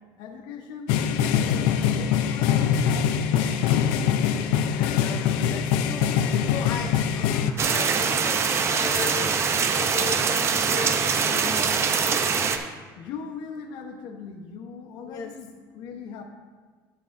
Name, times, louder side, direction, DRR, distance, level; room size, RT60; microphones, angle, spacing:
voice 1, 0.2-3.6 13.0-16.2, left 6 dB, 65° left, 4 dB, 1.0 m, -40 dB
sound 1, 0.9-7.5, left 8 dB, 90° left, 0.5 m, -23 dB
voice 2, 4.3-9.5 9.8-11.8 15.0-15.5, left 5 dB, 45° left, 4 dB, 0.6 m, -37 dB
sound 2, 7.6-12.6, right 6 dB, 30° right, 0.6 m, -23 dB
12.0 x 6.8 x 2.6 m, 1.5 s
cardioid pair, 140°, 9 cm